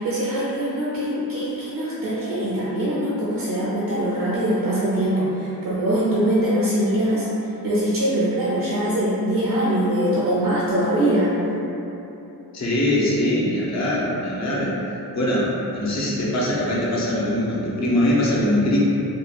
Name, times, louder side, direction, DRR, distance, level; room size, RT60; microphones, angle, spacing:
voice 1, 0.0-7.3 7.6-11.3, right 1 dB, 60° right, -9 dB, 0.6 m, -22 dB
voice 2, 12.5-14.7 15.1-18.8, left 1 dB, 45° left, -6 dB, 0.5 m, -22 dB
2.8 x 2.2 x 2.4 m, 3.0 s
wide cardioid pair, 160°, 38 cm